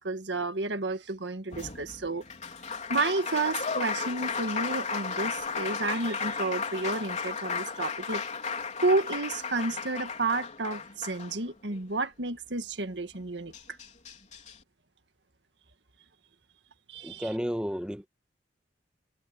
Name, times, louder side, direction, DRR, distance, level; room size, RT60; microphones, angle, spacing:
voice 1, 0.0-2.2 2.9-8.2 8.8-13.8 16.9-17.2, right 3 dB, 90° right, 1.7 m, -31 dB
Applause, 1.5-11.8 13.2-13.3 13.5-14.5, left 5 dB, 45° left, 4.0 m, -34 dB
voice 2, 17.0-18.1, equal, 5° right, 1.5 m, -32 dB
head